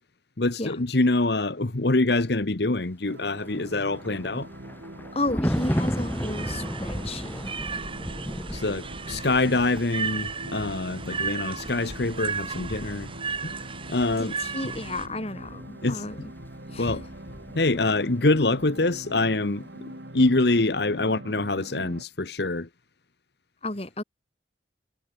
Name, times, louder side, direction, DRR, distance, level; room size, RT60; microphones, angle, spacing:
voice 1, 0.4-4.5 8.5-13.1 13.4-13.6 13.9-14.7 15.7-16.3 16.8-17.1 17.5-19.7 20.1-22.7, left 2 dB, 60° left, 1.2 m, -25 dB
sound 1, 3.1-22.0, right 1 dB, 70° right, 4.3 m, -43 dB
Thunder, 3.5-18.1 18.4-18.6, equal, 10° left, 5.6 m, -35 dB
voice 2, 5.1-7.4 14.2-14.3 14.5-15.6 15.9-16.1 16.7-16.9 23.6-24.0, left 2 dB, 30° left, 2.3 m, -32 dB
sound 2, 5.5-15.1, right 5 dB, 30° right, 6.5 m, -35 dB
head